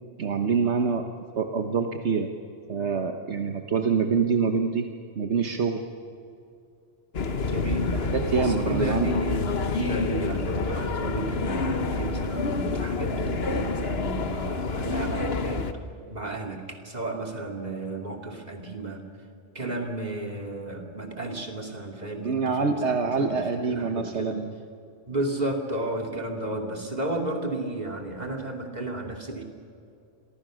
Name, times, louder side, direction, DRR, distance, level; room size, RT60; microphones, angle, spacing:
voice 1, 0.2-1.1 1.4-2.3 2.7-4.9 5.1-5.8 8.1-9.1 22.2-24.5, right 5 dB, 65° right, 5 dB, 1.5 m, -25 dB
sound 1, 7.1-15.7, left 3 dB, 55° left, 1.4 m, -28 dB
voice 2, 7.4-7.9 8.4-15.8 16.1-19.0 19.5-24.4 25.1-29.4, right 2 dB, 35° right, 3 dB, 2.8 m, -33 dB
29.5 x 23.5 x 6.4 m, 2.5 s
omnidirectional pair, 1.2 m